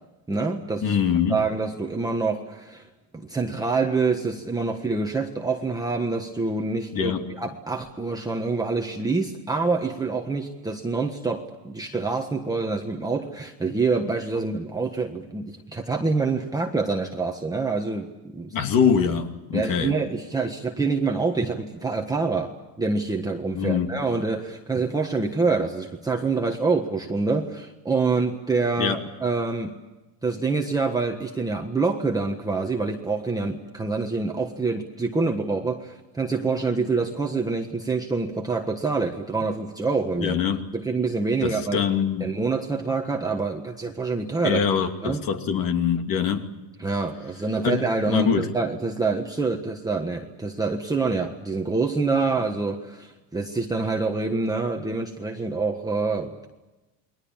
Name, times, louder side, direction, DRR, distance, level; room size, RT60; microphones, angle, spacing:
voice 1, 0.3-1.0 1.3-2.9 3.1-18.5 19.5-29.7 30.2-40.4 40.7-41.8 42.2-44.7 45.0-45.2 46.8-56.5, right 4 dB, 10° right, 1.4 m, -26 dB
voice 2, 0.8-1.4 6.9-7.3 18.5-20.0 23.5-24.0 28.8-29.0 40.2-40.6 41.4-42.3 44.4-46.5 47.6-48.5, left 7 dB, 45° left, 2.7 m, -24 dB
29.5 x 22.0 x 7.3 m
cardioid pair, 155°, 47 cm